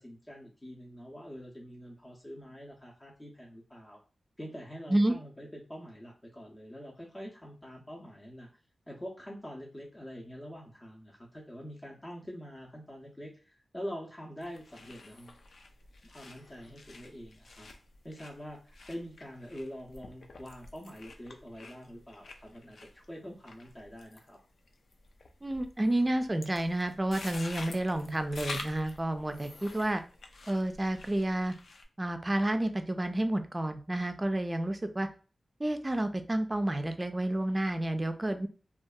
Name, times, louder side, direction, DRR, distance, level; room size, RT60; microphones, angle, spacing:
voice 1, 0.0-4.0 4.4-8.5 8.9-15.4 16.0-17.7 18.0-24.4, equal, 25° left, -3 dB, 0.6 m, -45 dB
sound 1, 14.4-31.8, left 3 dB, 75° left, 0.3 m, -48 dB
voice 2, 25.4-30.0 30.5-31.5 32.0-35.1 35.6-38.5, right 1 dB, 25° right, 7 dB, 0.4 m, -30 dB
2.6 x 2.3 x 2.2 m, 0.35 s
cardioid pair, 50°, 0 cm